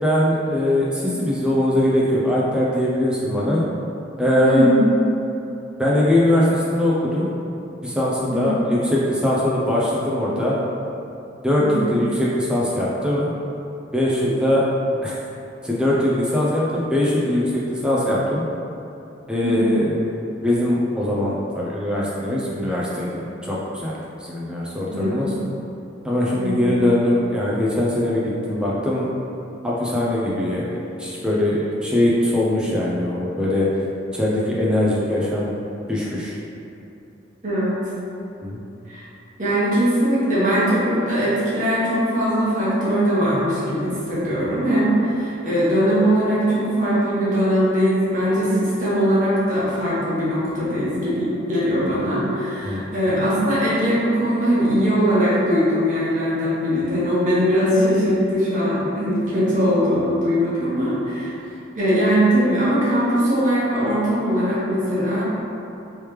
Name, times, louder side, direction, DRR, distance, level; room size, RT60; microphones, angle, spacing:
voice 1, 0.0-3.6 4.2-4.7 5.8-7.3 7.8-10.6 11.4-13.3 13.9-14.6 15.0-15.2 15.6-18.4 19.3-20.1 20.4-25.3 26.0-29.1 29.6-33.6 34.1-35.5 35.9-36.4 38.4-38.6 52.6-52.9, left 1 dB, 5° right, -6 dB, 0.4 m, -21 dB
voice 2, 4.4-4.8 8.3-8.4 11.6-12.0 19.4-19.7 24.9-25.3 26.4-26.7 37.4-37.8 38.9-39.0 39.4-61.3 61.7-65.2, equal, 45° right, -10 dB, 1.0 m, -20 dB
3.3 x 3.1 x 3.1 m, 2.8 s
head